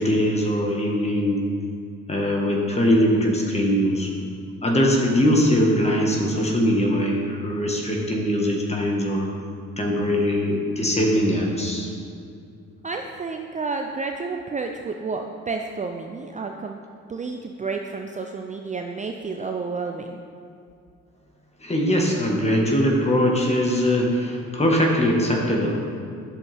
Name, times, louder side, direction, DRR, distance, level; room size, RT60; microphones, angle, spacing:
voice 1, 0.0-1.4 2.1-4.1 4.6-9.3 9.8-11.9 21.6-25.8, equal, 20° left, 0 dB, 1.5 m, -21 dB
voice 2, 12.8-16.8 17.1-20.2, right 4 dB, 25° right, 3 dB, 0.5 m, -30 dB
9.8 x 6.8 x 3.5 m, 2.4 s
cardioid pair, 90°, 30 cm